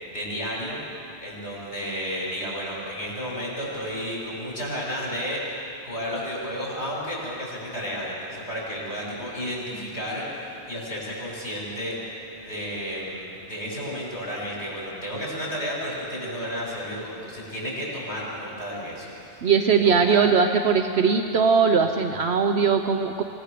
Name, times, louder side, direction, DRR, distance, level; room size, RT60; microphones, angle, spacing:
voice 1, 0.1-0.8 1.2-11.9 12.4-20.3, equal, 70° left, -5 dB, 7.2 m, -32 dB
voice 2, 19.4-23.2, right 6 dB, 70° right, 6 dB, 1.1 m, -20 dB
26.0 x 18.0 x 6.8 m, 2.8 s
omnidirectional pair, 1.1 m